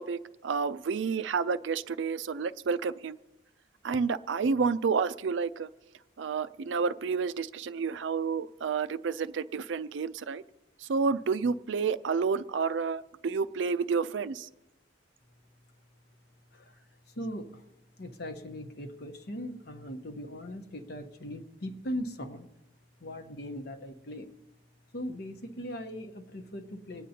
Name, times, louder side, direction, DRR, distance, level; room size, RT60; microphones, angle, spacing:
voice 1, 0.0-3.2 3.8-5.7 6.2-10.4 10.9-14.5, right 5 dB, 75° right, 14 dB, 0.4 m, -30 dB
voice 2, 17.1-17.6 18.0-22.5 23.0-24.3 24.9-27.1, equal, 55° left, 6 dB, 0.9 m, -39 dB
26.5 x 9.1 x 2.8 m, 0.96 s
head